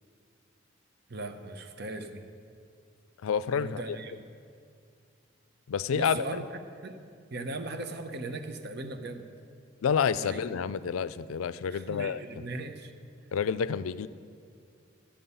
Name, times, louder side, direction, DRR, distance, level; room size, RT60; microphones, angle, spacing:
voice 1, 1.1-2.3 3.6-4.2 5.9-6.4 6.8-7.0 7.3-9.3 10.2-10.6 11.7-12.9, right 2 dB, 55° right, 8 dB, 0.8 m, -38 dB
voice 2, 3.2-3.8 5.7-6.2 9.8-12.2 13.3-14.1, left 7 dB, 90° left, 15 dB, 0.4 m, -29 dB
12.5 x 8.5 x 5.5 m, 2.3 s
head